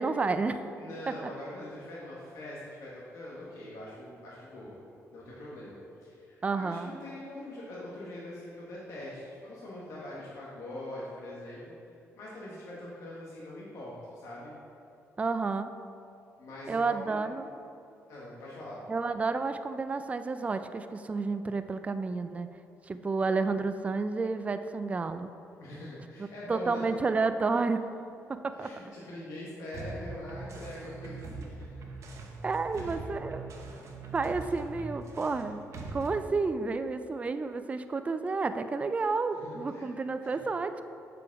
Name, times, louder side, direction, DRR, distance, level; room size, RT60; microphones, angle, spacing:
voice 1, 0.0-0.6 1.1-1.2 6.4-6.9 15.2-15.7 16.7-17.6 18.9-22.5 22.9-25.3 26.2-27.8 28.4-28.7 32.4-33.5 34.1-35.6 35.9-40.8, right 4 dB, 25° right, 10 dB, 0.3 m, -30 dB
voice 2, 0.8-4.8 5.1-11.7 12.2-14.5 16.4-17.2 18.1-18.8 25.6-26.9 28.5-31.8 32.8-33.0 39.3-39.9 40.2-40.4, left 1 dB, 70° left, -6 dB, 1.3 m, -43 dB
sound 1, 29.7-36.2, right 3 dB, 60° right, 1.0 m, -42 dB
6.7 x 4.9 x 4.7 m, 2.6 s
cardioid pair, 90°, 6 cm